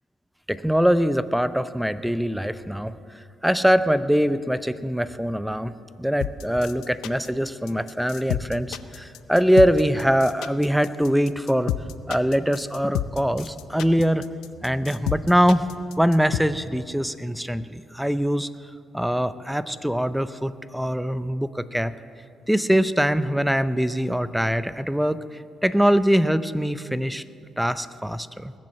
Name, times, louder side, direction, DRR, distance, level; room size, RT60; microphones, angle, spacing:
voice 1, 0.5-2.9 3.4-5.7 6.0-11.7 12.1-14.3 14.6-15.7 16.0-18.5 18.9-21.9 22.5-25.2 25.6-27.2 27.6-28.5, equal, ahead, 14 dB, 0.6 m, -22 dB
sound 1, 6.2-16.4, left 12 dB, 90° left, 0.5 m, -29 dB
20.0 x 7.6 x 7.8 m, 2.4 s
cardioid pair, 90°, 0 cm